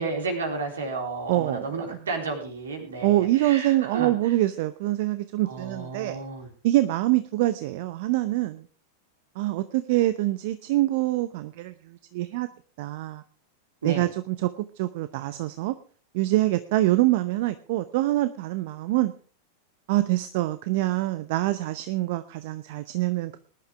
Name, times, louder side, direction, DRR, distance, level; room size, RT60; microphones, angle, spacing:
voice 1, 0.0-4.3 5.4-6.5 13.8-14.1, right 3 dB, 75° right, 3 dB, 3.8 m, -32 dB
voice 2, 1.3-1.7 3.0-6.2 6.6-8.7 9.4-12.5 12.8-13.2 13.8-15.7 16.1-19.1 19.9-23.4, right 16 dB, 55° right, 12 dB, 0.7 m, -25 dB
20.0 x 11.0 x 3.5 m, 0.39 s
figure-of-eight pair, 90°, 0 cm